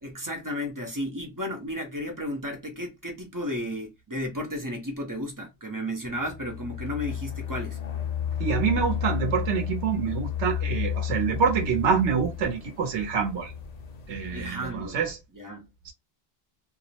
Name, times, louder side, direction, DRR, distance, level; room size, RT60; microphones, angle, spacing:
voice 1, 0.0-7.8 14.3-15.0 15.4-15.7, equal, 25° right, 0.5 m, -33 dB
sound 1, 6.2-14.5, left 9 dB, 55° left, 0.5 m, -32 dB
voice 2, 8.4-13.5 14.1-15.2 15.8-15.9, right 6 dB, 85° right, 1.0 m, -26 dB
2.4 x 2.0 x 2.7 m
omnidirectional pair, 1.1 m